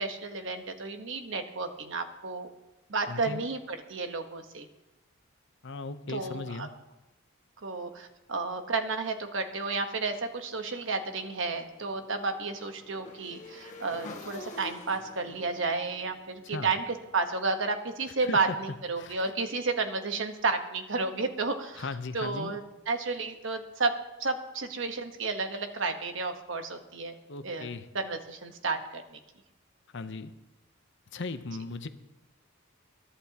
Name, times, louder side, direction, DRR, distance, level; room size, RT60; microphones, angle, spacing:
voice 1, 0.0-2.5 2.9-4.7 6.1-6.7 7.6-16.8 17.1-21.9 22.1-23.9 24.2-27.1 27.4-29.2, right 3 dB, 60° right, 6 dB, 1.2 m, -32 dB
voice 2, 3.1-3.4 5.6-6.7 16.4-16.7 18.2-18.6 19.0-19.2 21.8-22.6 27.3-27.9 29.9-30.3 31.1-31.9, left 3 dB, 60° left, 10 dB, 0.8 m, -37 dB
Motorcycle / Engine, 11.1-17.2, left 2 dB, 35° left, 1.8 m, -48 dB
22.0 x 11.5 x 2.9 m, 1.0 s
head